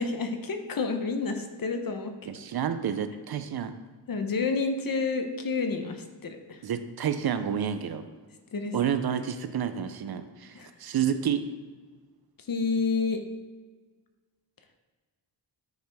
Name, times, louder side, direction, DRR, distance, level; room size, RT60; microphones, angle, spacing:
voice 1, 0.0-2.1 4.1-6.6 8.5-8.7 10.5-10.7 12.5-13.2, left 4 dB, 50° left, 6 dB, 0.8 m, -29 dB
voice 2, 2.3-3.8 6.6-8.0 8.7-11.5, right 8 dB, 55° right, 10 dB, 0.5 m, -29 dB
9.1 x 4.8 x 3.4 m, 1.4 s
wide cardioid pair, 160°, 44 cm